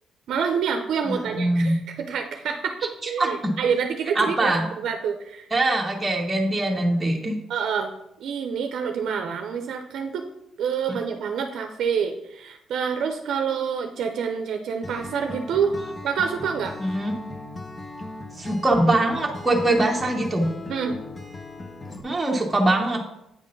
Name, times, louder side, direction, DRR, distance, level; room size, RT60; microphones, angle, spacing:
voice 1, 0.3-5.5 7.5-7.9 8.2-10.2 10.6-15.8 16.0-16.8 20.7-21.0, right 6 dB, 70° right, 5 dB, 0.6 m, -27 dB
voice 2, 1.0-1.8 3.2-3.5 4.1-4.7 5.5-7.4 10.9-11.0 16.8-17.1 18.4-20.5 22.0-23.0, right 1 dB, 15° right, -1 dB, 1.0 m, -22 dB
Acoustic guitar, 14.8-22.0, left 2 dB, 25° left, 0.9 m, -38 dB
8.5 x 3.7 x 5.2 m, 0.84 s
cardioid pair, 90°, 0 cm